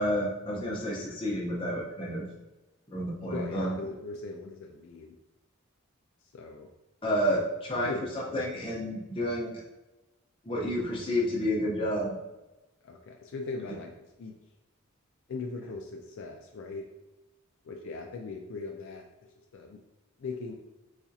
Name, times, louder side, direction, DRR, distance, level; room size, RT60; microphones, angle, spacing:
voice 1, 0.0-2.3 2.9-3.8 7.0-9.6 10.4-12.1, equal, 25° left, -3 dB, 0.7 m, -30 dB
voice 2, 3.3-5.2 6.3-6.7 7.8-8.4 12.8-13.9 14.2-14.3 15.3-16.9 17.6-19.1 19.5-19.8 20.2-20.5, left 3 dB, 60° left, 2 dB, 0.3 m, -39 dB
4.1 x 2.4 x 2.7 m, 1.0 s
head